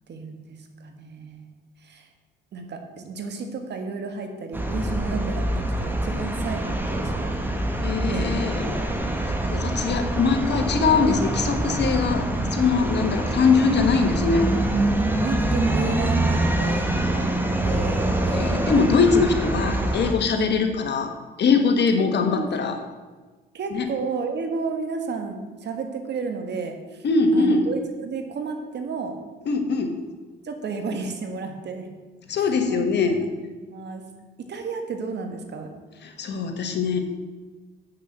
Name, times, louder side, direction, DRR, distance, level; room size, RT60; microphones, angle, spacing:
voice 1, 0.1-1.5 1.8-2.1 2.5-7.3 8.1-8.7 15.2-17.3 17.6-18.5 18.9-19.0 20.3-20.6 22.0-22.5 23.5-27.0 27.3-29.2 30.4-31.9 32.4-33.3 33.6-34.0 34.5-35.7, right 4 dB, 60° right, 5 dB, 1.6 m, -32 dB
sound 1, 4.5-20.1, right 1 dB, 10° right, 1.4 m, -25 dB
voice 2, 7.8-8.8 9.4-14.5 18.3-21.1 21.4-22.8 23.7-23.9 27.0-27.7 29.5-30.0 32.3-33.2 36.0-37.0, left 4 dB, 60° left, 5 dB, 1.5 m, -22 dB
8.3 x 6.6 x 6.6 m, 1.3 s
cardioid pair, 90°, 20 cm